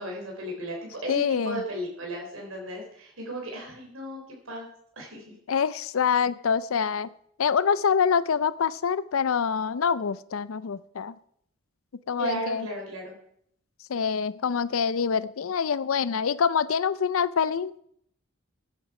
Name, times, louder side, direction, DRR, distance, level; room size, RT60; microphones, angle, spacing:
voice 1, 0.0-4.7 4.9-5.2 12.2-13.1, right 1 dB, 75° right, 0 dB, 3.7 m, -35 dB
voice 2, 1.1-1.6 5.5-7.1 7.4-11.1 12.1-12.7 13.9-17.8, left 6 dB, 75° left, 17 dB, 0.5 m, -25 dB
14.5 x 9.0 x 4.9 m, 0.69 s
head